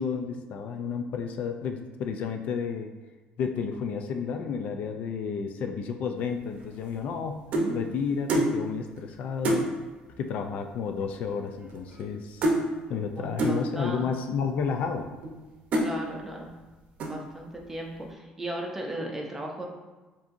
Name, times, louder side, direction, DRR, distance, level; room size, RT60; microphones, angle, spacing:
voice 1, 0.0-2.9 3.4-7.4 7.7-9.7 10.2-12.4 12.9-15.1, left 6 dB, 55° left, 5 dB, 0.3 m, -31 dB
sound 1, 6.6-7.8 8.3-8.5 9.0-9.1 9.4-9.7 10.6-10.7 10.9-11.2 11.5-12.1 12.4-12.6 13.4-13.6 14.3-14.4 15.0-15.4 15.7-15.9 16.5-16.7 17.0-17.4, right 1 dB, 50° right, 0.7 m, -27 dB
voice 2, 13.2-14.1 15.8-16.5 17.1-19.7, right 1 dB, 10° right, 0 dB, 0.6 m, -36 dB
7.2 x 2.7 x 2.6 m, 1.2 s
cardioid pair, 160°, 3 cm